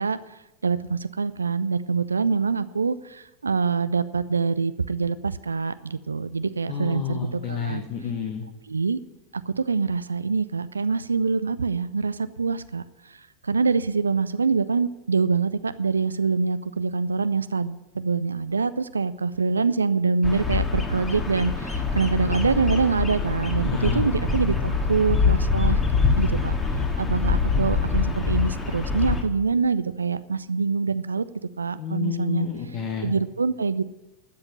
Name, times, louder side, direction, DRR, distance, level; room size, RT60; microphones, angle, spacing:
voice 1, 0.0-7.8 8.6-9.0 9.3-25.8 26.2-26.6 27.0-31.2 31.6-32.5 33.0-33.8, right 4 dB, 75° right, 14 dB, 0.4 m, -25 dB
voice 2, 6.7-8.4 23.6-24.1 24.6-24.7 31.8-33.1, left 7 dB, 40° left, 4 dB, 1.4 m, -30 dB
Bird vocalization bird call bird song, 20.2-29.2, left 4 dB, 20° left, 1.9 m, -24 dB
12.5 x 7.8 x 8.7 m, 1.0 s
figure-of-eight pair, 90°, 0 cm